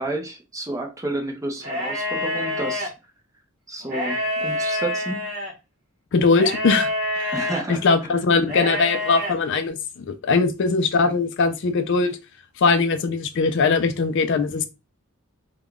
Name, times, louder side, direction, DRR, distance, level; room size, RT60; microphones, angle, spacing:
voice 1, 0.0-2.9 3.7-5.2 7.3-8.2, right 2 dB, 15° right, 0.5 m, -31 dB
sound 1, 1.6-2.9 3.8-5.5 6.4-7.6 8.4-9.3, left 1 dB, 45° right, 1.0 m, -27 dB
voice 2, 6.1-6.9 7.1-12.2 12.6-14.7, left 4 dB, 55° left, 0.4 m, -21 dB
3.5 x 2.2 x 2.2 m
head